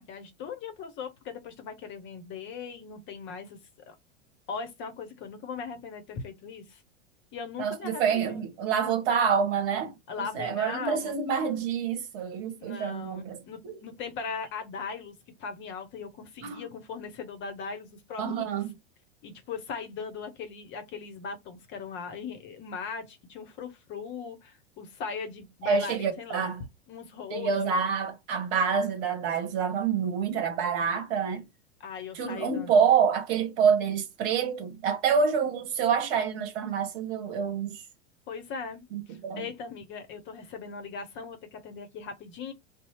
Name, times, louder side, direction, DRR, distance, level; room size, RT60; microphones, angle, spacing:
voice 1, 0.0-3.6 3.9-4.0 4.5-6.8 7.3-8.4 10.1-11.2 12.6-15.1 15.4-18.5 19.2-26.5 26.9-27.7 31.8-32.8 38.3-42.5, left 5 dB, 35° left, 0.8 m, -39 dB
voice 2, 7.6-9.9 10.3-13.4 13.6-13.8 16.4-16.6 18.2-18.7 25.6-26.6 27.3-31.4 32.1-37.8 38.9-39.4, right 6 dB, 50° right, 1.2 m, -27 dB
2.7 x 2.1 x 3.2 m
hypercardioid pair, 95°, 35 cm